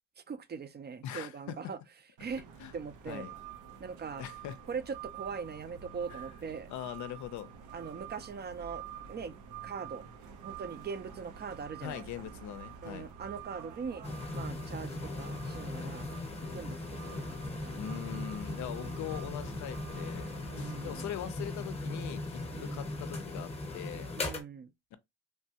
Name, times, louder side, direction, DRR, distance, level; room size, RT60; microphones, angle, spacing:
voice 1, 0.3-1.8 2.2-2.4 2.7-3.2 3.8-4.2 4.7-6.7 7.7-9.3 9.6-10.1 10.4-12.0 12.8-14.0 14.3-16.1 16.5-17.3 20.5-21.1 22.5-22.9 24.2-24.7, right 5 dB, 35° right, 0.4 m, -41 dB
voice 2, 1.0-1.7 2.6-2.7 3.1-3.3 4.2-4.6 6.1-6.3 6.7-7.5 11.8-13.1 17.8-20.3 20.6-24.1 24.9-25.0, left 11 dB, 75° left, 0.5 m, -41 dB
sound 1, 2.2-21.0, right 8 dB, 90° right, 0.7 m, -48 dB
sound 2, 14.0-24.4, left 2 dB, 20° left, 0.8 m, -39 dB
3.2 x 2.2 x 2.7 m
cardioid pair, 90°, 30 cm